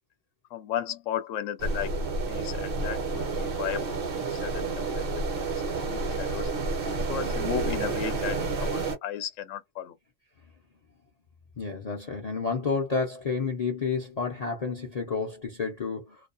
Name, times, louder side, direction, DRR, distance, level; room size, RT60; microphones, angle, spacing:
voice 1, 0.5-1.9 2.3-5.0 5.4-6.5 7.1-9.9, left 10 dB, 85° left, 0.9 m, -35 dB
sound 1, 1.6-9.0, right 3 dB, 55° right, 0.9 m, -30 dB
voice 2, 11.6-16.2, left 5 dB, 40° left, 0.6 m, -30 dB
2.4 x 2.2 x 2.4 m
omnidirectional pair, 1.3 m